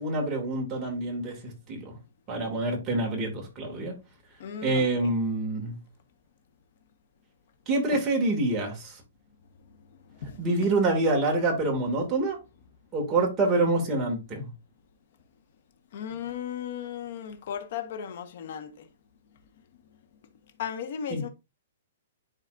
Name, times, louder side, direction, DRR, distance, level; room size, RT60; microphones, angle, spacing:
voice 1, 0.0-2.0 2.3-3.9 4.6-5.8 7.7-9.0 10.4-12.4 12.9-14.5 21.1-21.2, right 2 dB, 15° right, 2.2 m, -26 dB
voice 2, 4.4-5.1 10.2-10.5 15.9-18.9 20.6-21.3, left 8 dB, 50° left, 1.3 m, -36 dB
10.5 x 4.1 x 2.6 m
hypercardioid pair, 165°, 0 cm